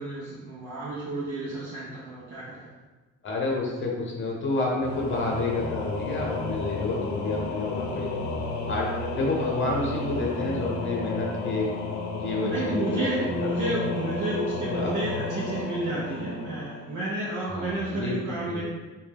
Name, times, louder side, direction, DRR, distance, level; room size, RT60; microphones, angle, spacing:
voice 1, 0.0-2.7 12.4-18.6, right 2 dB, 70° right, -7 dB, 0.6 m, -31 dB
voice 2, 3.2-8.1 8.7-11.7 12.2-13.0 13.4-13.5 14.7-14.9 17.5-18.6, left 2 dB, 40° left, -2 dB, 0.7 m, -29 dB
Singing / Musical instrument, 4.8-17.4, left 3 dB, 70° left, 0.5 m, -32 dB
2.1 x 2.1 x 3.3 m, 1.2 s
cardioid pair, 90°, 30 cm